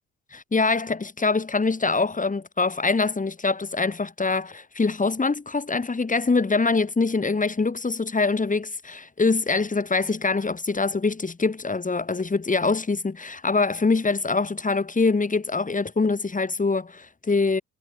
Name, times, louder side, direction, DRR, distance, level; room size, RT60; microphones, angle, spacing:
voice 1, 0.3-17.6, left 3 dB, 25° left, 7.8 m, -24 dB
cardioid pair, 90°, 30 cm